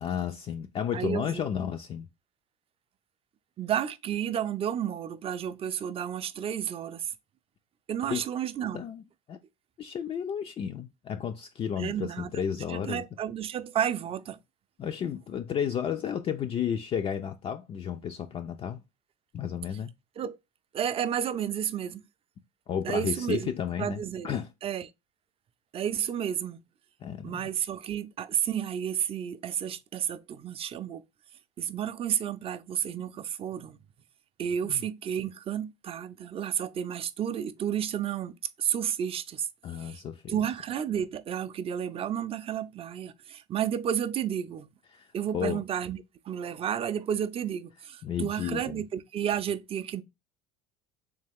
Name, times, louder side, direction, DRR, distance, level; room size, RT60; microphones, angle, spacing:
voice 1, 0.0-2.1 8.1-8.2 8.7-9.0 9.3-9.4 9.8-13.0 14.8-18.8 19.3-19.9 22.7-24.5 27.0-27.5 34.7-34.8 39.6-40.4 44.9-45.1 45.3-45.6 48.0-48.8, left 8 dB, 35° left, 0.4 m, -32 dB
voice 2, 0.9-1.5 3.6-7.1 7.9-8.9 11.8-12.3 12.7-14.4 20.2-20.4 20.7-22.0 22.8-23.5 23.8-24.9 25.7-26.6 27.2-31.0 31.6-33.8 34.4-39.5 39.8-40.0 40.3-44.7 45.1-46.0 46.3-50.0, right 9 dB, 35° right, 0.4 m, -31 dB
3.4 x 3.3 x 3.5 m
supercardioid pair, 95°, 17 cm